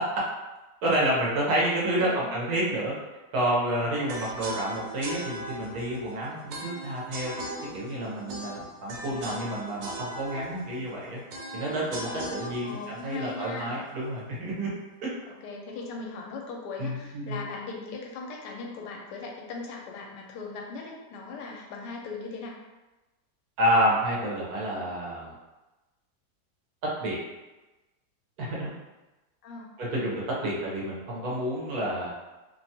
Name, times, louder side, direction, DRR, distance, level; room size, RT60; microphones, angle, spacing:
voice 1, 0.8-2.9 3.3-7.3 7.7-11.2 11.5-14.7 15.0-15.1 16.8-17.4 23.6-25.3 27.0-27.2 28.4-28.7 29.8-32.1, right 1 dB, 70° right, -5 dB, 1.2 m, -29 dB
voice 2, 2.0-2.3 4.4-4.6 8.9-9.1 12.6-13.8 15.2-22.6 29.4-29.7, left 4 dB, 85° left, 0 dB, 1.2 m, -39 dB
sound 1, 4.1-14.2, right 1 dB, 85° right, 1.2 m, -39 dB
3.0 x 2.2 x 2.7 m, 1.1 s
omnidirectional pair, 1.8 m